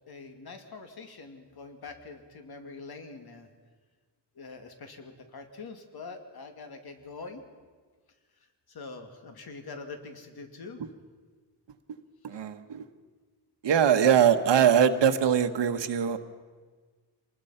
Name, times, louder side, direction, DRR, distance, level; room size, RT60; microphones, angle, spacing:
voice 1, 0.1-3.5 4.3-7.4 8.7-10.8 12.3-12.4, left 4 dB, 60° left, 5 dB, 2.4 m, -44 dB
voice 2, 12.2-12.8 13.6-16.2, right 8 dB, 90° right, 6 dB, 1.3 m, -22 dB
26.5 x 20.0 x 5.7 m, 1.5 s
wide cardioid pair, 155°, 42 cm